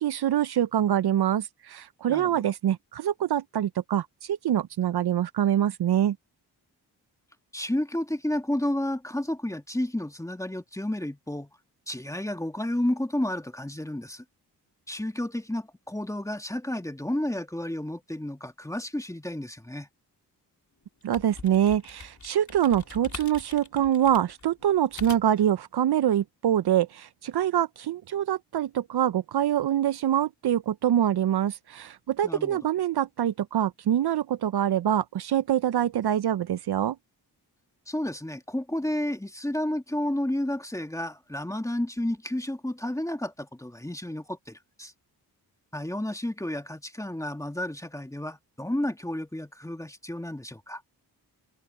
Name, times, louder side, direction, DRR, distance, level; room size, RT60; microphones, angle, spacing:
voice 1, 0.0-6.2 21.0-37.0, right 10 dB, 60° right, 0.7 m, -25 dB
voice 2, 2.1-2.4 7.5-11.5 11.9-14.2 14.9-19.9 32.2-32.6 37.9-44.9 45.7-50.8, left 1 dB, 5° left, 1.6 m, -31 dB
sound 1, 20.8-25.5, left 4 dB, 40° left, 4.3 m, -44 dB
supercardioid pair, 50°, 43 cm